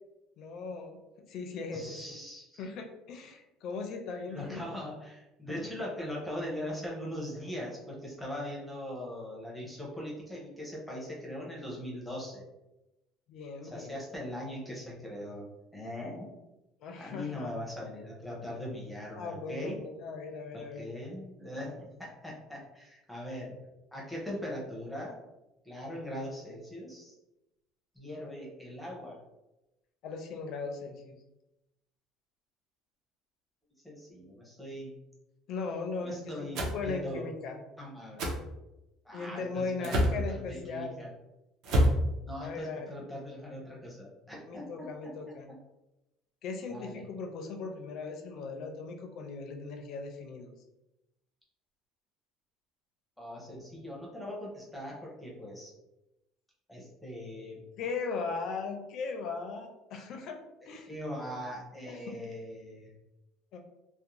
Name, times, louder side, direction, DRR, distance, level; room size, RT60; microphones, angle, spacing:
voice 1, 0.4-2.2 2.6-4.6 5.6-5.7 13.3-14.0 16.8-17.6 19.2-20.8 30.0-31.2 35.5-37.6 39.1-41.0 42.4-42.9 44.5-45.5 46.4-50.5 57.8-60.4 60.6-60.9 61.9-62.1 63.5-63.6, left 4 dB, 45° left, 4 dB, 0.4 m, -38 dB
voice 2, 1.7-2.6 4.3-12.4 13.6-16.3 17.0-19.8 20.5-23.6 23.9-25.2 25.6-27.2 27.9-29.2 33.8-35.0 36.0-37.3 37.8-38.4 39.0-41.1 42.2-45.6 46.7-47.1 53.2-55.7 56.7-57.6 60.8-63.0, left 1 dB, ahead, -4 dB, 0.6 m, -40 dB
sound 1, 36.5-36.8 38.2-38.4 39.8-40.2 41.6-42.0, equal, 50° right, 0.5 m, -25 dB
2.5 x 2.0 x 2.9 m, 0.96 s
cardioid pair, 170°, 0 cm